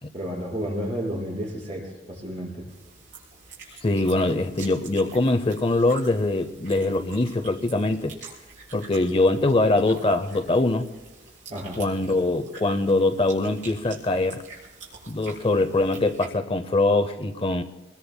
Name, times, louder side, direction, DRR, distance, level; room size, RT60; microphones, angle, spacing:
voice 1, 0.1-1.9 2.2-2.5 11.5-11.8, equal, 40° right, -4 dB, 5.1 m, -31 dB
sound 1, 2.7-16.2, right 4 dB, 80° right, 4.4 m, -46 dB
voice 2, 3.8-8.2 8.7-10.9 11.8-14.4 15.1-17.6, left 2 dB, 30° left, 10 dB, 0.6 m, -23 dB
26.5 x 20.5 x 2.2 m, 1.2 s
head